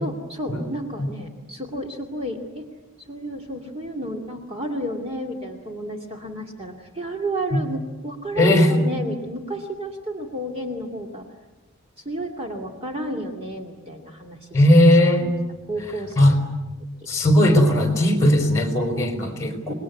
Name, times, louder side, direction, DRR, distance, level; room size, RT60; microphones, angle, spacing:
voice 1, 0.0-2.7 3.1-11.3 12.0-14.6 15.2-15.3 15.7-16.2 19.7-19.8, right 1 dB, 25° right, 2 dB, 2.5 m, -31 dB
voice 2, 8.3-8.7 14.5-15.4 16.2-16.4 17.1-19.7, left 1 dB, 15° left, 4 dB, 4.6 m, -17 dB
28.0 x 21.0 x 9.6 m, 1.2 s
head